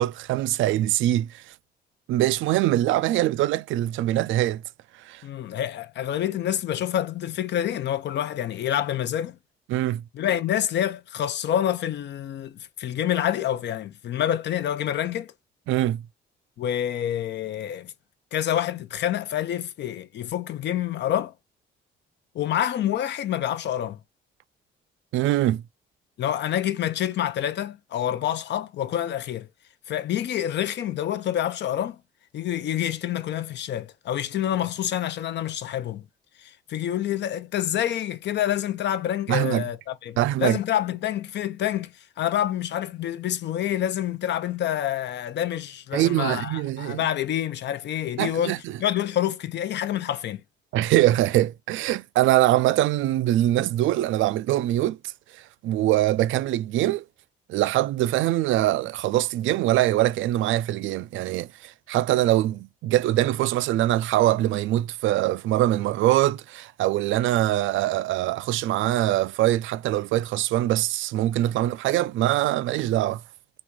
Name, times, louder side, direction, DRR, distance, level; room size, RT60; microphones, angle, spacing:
voice 1, 0.0-1.4 2.1-4.6 5.0-5.2 9.7-10.0 15.7-16.0 25.1-25.6 39.3-39.6 40.2-40.6 45.9-47.0 48.2-48.6 50.7-55.0 55.6-57.0 57.5-73.2, right 14 dB, 80° right, 0.4 m, -23 dB
voice 2, 5.2-9.4 10.1-15.3 16.6-17.9 18.3-21.3 22.3-24.0 26.2-29.5 29.9-32.0 32.3-36.1 36.4-50.4, left 11 dB, 65° left, 0.6 m, -27 dB
4.1 x 2.4 x 4.5 m
cardioid pair, 90°, 20 cm